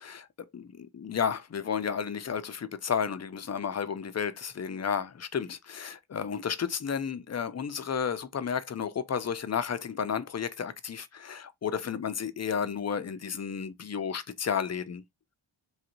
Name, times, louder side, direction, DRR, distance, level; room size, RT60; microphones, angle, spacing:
voice 1, 0.5-15.0, left 7 dB, 35° left, 0.4 m, -32 dB
3.1 x 2.5 x 2.9 m
wide cardioid pair, 75°, 48 cm